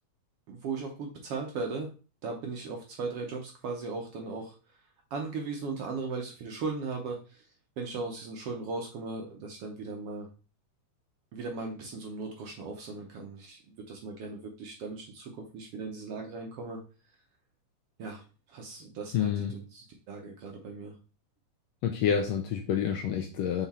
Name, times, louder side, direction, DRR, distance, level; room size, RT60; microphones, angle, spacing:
voice 1, 0.5-1.9 2.2-4.5 5.1-7.4 7.8-10.3 11.3-13.6 13.9-16.8 18.0-18.2 18.5-20.9, right 4 dB, 65° right, 1 dB, 1.6 m, -37 dB
voice 2, 19.1-19.5 21.8-23.7, left 8 dB, 75° left, 3 dB, 1.6 m, -28 dB
6.0 x 4.0 x 4.2 m, 0.34 s
omnidirectional pair, 3.5 m